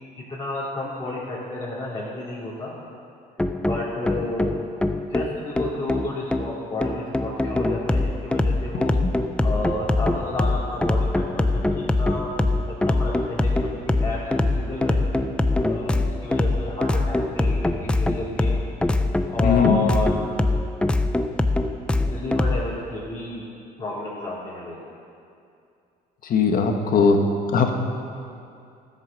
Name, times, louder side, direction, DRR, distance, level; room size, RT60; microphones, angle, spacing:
voice 1, 0.3-2.7 3.7-4.6 5.1-8.9 9.4-12.3 12.7-15.1 15.6-18.6 19.3-20.3 22.1-23.4 23.8-24.9, left 2 dB, 30° left, -8 dB, 2.8 m, -31 dB
sound 1, 3.4-22.6, left 2 dB, 5° left, 0.5 m, -23 dB
voice 2, 19.4-19.8 26.2-27.2 27.5-27.7, left 5 dB, 55° left, 4 dB, 1.5 m, -19 dB
14.0 x 8.2 x 6.5 m, 2.5 s
cardioid pair, 110°, 17 cm